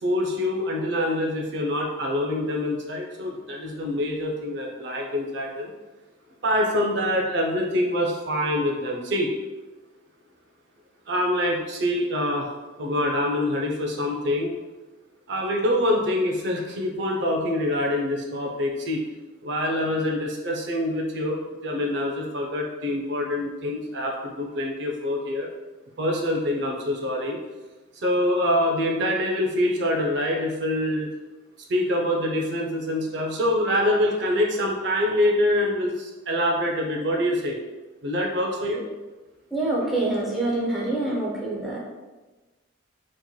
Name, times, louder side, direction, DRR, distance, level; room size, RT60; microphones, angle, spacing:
voice 1, 0.0-5.7 6.4-9.3 11.1-12.5 12.8-14.5 15.3-19.0 19.4-25.5 26.0-27.4 27.9-31.1 31.7-37.6 38.0-38.9, left 1 dB, 55° right, 0 dB, 0.5 m, -25 dB
voice 2, 39.5-41.8, right 2 dB, ahead, -6 dB, 0.6 m, -26 dB
4.3 x 2.9 x 2.2 m, 1.2 s
head